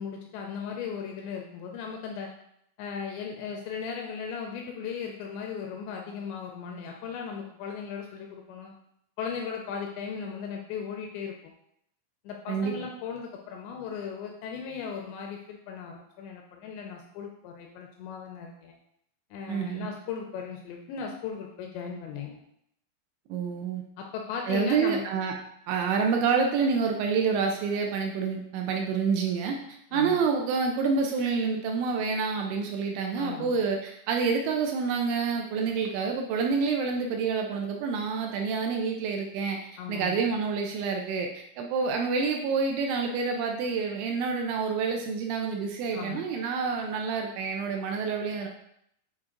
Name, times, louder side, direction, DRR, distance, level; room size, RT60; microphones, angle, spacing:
voice 1, 0.0-2.3 2.8-8.7 9.2-11.3 12.3-18.7 19.3-22.4 24.0-25.0 29.9-30.2 33.2-33.6 39.8-40.2 45.9-46.2, left 6 dB, 80° left, 1 dB, 2.6 m, -37 dB
voice 2, 19.5-19.9 23.3-23.8 24.5-25.3 25.7-29.6 29.9-39.6 39.9-48.5, right 5 dB, 80° right, 2 dB, 2.8 m, -28 dB
8.8 x 4.4 x 3.8 m, 0.74 s
omnidirectional pair, 5.7 m